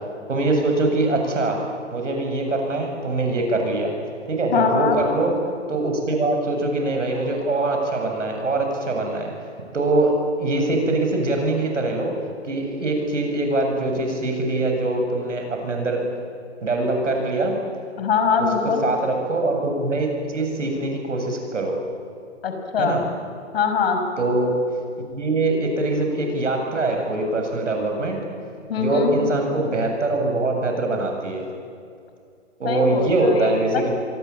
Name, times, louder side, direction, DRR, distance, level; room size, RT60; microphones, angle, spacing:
voice 1, 0.3-1.6 1.9-3.9 4.3-5.3 5.7-9.3 9.7-10.1 10.4-12.1 12.4-16.0 16.6-17.5 18.8-21.8 22.8-23.0 24.2-24.5 25.1-28.2 28.8-31.4 32.6-33.9, right 2 dB, 75° right, 3 dB, 7.9 m, -23 dB
voice 2, 4.5-5.0 18.0-18.8 22.4-23.0 23.5-24.0 28.7-29.2 32.6-33.9, left 6 dB, 55° left, 5 dB, 5.5 m, -22 dB
26.0 x 24.0 x 8.9 m, 2.3 s
figure-of-eight pair, 130°, 37 cm